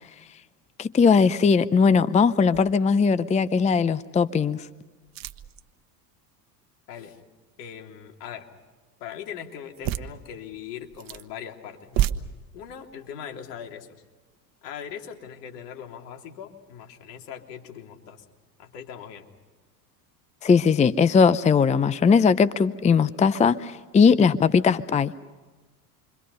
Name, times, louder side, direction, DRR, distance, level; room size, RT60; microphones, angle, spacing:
voice 1, 0.8-4.7 20.4-25.1, left 5 dB, 15° left, 16 dB, 0.6 m, -19 dB
sound 1, 2.5-3.0 3.5-3.6 5.0-5.7 9.7-10.1 10.8-11.3 11.8-12.1, right 12 dB, 40° right, 1.2 m, -29 dB
voice 2, 6.9-7.2 7.6-8.5 9.0-12.1 12.5-14.0 14.6-18.2 18.6-19.2, left 8 dB, 70° left, 3 dB, 3.4 m, -40 dB
28.5 x 25.0 x 5.6 m, 1.3 s
hypercardioid pair, 85°, 50 cm